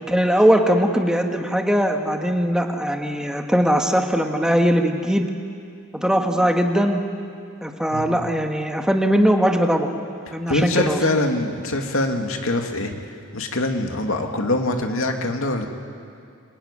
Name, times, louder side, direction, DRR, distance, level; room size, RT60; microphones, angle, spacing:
voice 1, 0.1-5.3 5.9-7.0 7.6-9.9 10.3-11.0, equal, 5° right, 3 dB, 1.6 m, -20 dB
voice 2, 7.9-8.3 10.5-13.0 13.3-15.7, left 2 dB, 75° left, 4 dB, 2.4 m, -23 dB
26.0 x 20.0 x 10.0 m, 2.4 s
head